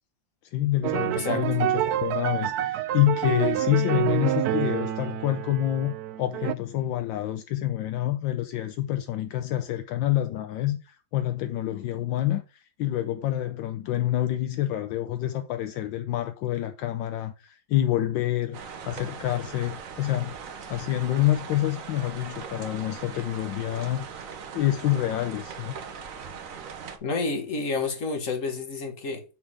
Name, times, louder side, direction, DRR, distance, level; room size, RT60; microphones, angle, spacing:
voice 1, 0.5-18.6 18.9-20.3 20.7-24.1 24.5-25.7, left 13 dB, 80° left, 1.3 m, -27 dB
sound 1, 0.8-6.5, right 12 dB, 80° right, 0.9 m, -28 dB
voice 2, 1.0-1.5 27.0-29.2, left 3 dB, 45° left, 1.7 m, -29 dB
sound 2, 18.5-27.0, right 6 dB, 50° right, 1.2 m, -40 dB
7.5 x 3.8 x 6.2 m
omnidirectional pair, 2.1 m